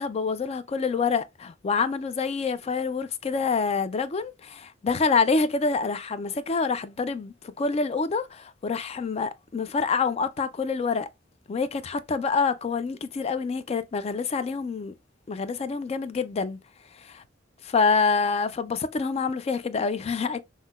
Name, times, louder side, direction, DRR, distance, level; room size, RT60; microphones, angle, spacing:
voice 1, 0.0-11.1 11.5-14.9 15.3-16.6 17.0-17.2 17.6-20.4, left 4 dB, 30° left, 0.3 m, -26 dB
5.6 x 2.1 x 2.2 m
head